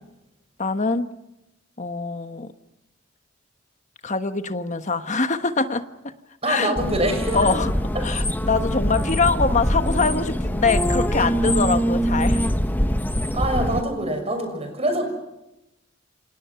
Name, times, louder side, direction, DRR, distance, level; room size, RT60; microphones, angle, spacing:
voice 1, 0.6-1.1 1.8-2.5 4.0-5.8 6.4-6.8 7.3-7.7 8.0-12.4, left 4 dB, 35° left, 9 dB, 1.3 m, -23 dB
voice 2, 6.4-7.4 13.3-15.0, right 1 dB, 30° right, 5 dB, 6.4 m, -24 dB
sound 1, 6.8-13.8, equal, 10° left, 1.1 m, -23 dB
29.0 x 26.5 x 5.8 m, 0.93 s
head